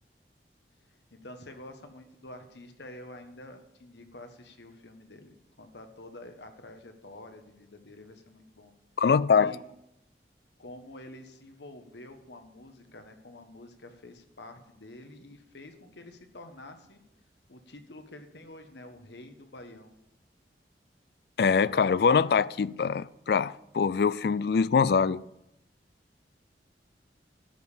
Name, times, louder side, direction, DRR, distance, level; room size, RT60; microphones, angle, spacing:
voice 1, 0.9-8.7 9.3-9.6 10.6-17.0 17.5-19.9, left 1 dB, 80° left, 1.4 m, -48 dB
voice 2, 9.0-9.6 21.4-25.2, left 6 dB, 65° left, 0.3 m, -23 dB
12.0 x 5.4 x 8.4 m
head